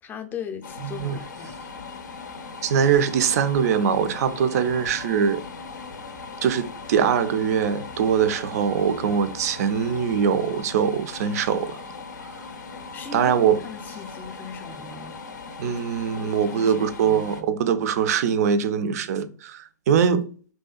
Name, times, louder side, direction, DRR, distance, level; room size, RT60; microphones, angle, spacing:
voice 1, 0.0-1.6 12.9-15.2 16.2-17.5, left 6 dB, 20° left, 0.4 m, -38 dB
sound 1, 0.6-17.4, left 4 dB, 75° left, 0.4 m, -39 dB
voice 2, 0.8-1.2 2.6-5.4 6.4-11.7 13.1-13.6 15.6-20.3, right 7 dB, 60° right, 0.4 m, -22 dB
2.6 x 2.2 x 2.3 m
hypercardioid pair, 115°, 10 cm